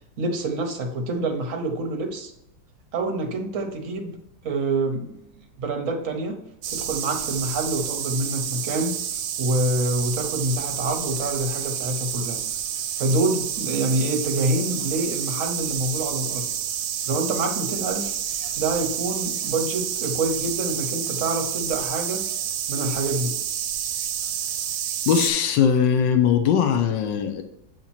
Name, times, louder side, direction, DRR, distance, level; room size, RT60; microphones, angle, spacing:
voice 1, 0.2-2.3 2.9-4.2 4.4-6.4 6.7-9.0 9.4-12.4 13.0-16.5 17.1-18.2 18.6-22.3 22.7-23.4, right 2 dB, 50° right, 3 dB, 1.2 m, -26 dB
sound 1, 6.6-25.3, right 9 dB, 75° right, 1.2 m, -29 dB
voice 2, 25.1-27.4, left 7 dB, 85° left, 6 dB, 1.4 m, -20 dB
8.5 x 2.9 x 4.2 m, 0.80 s
omnidirectional pair, 2.0 m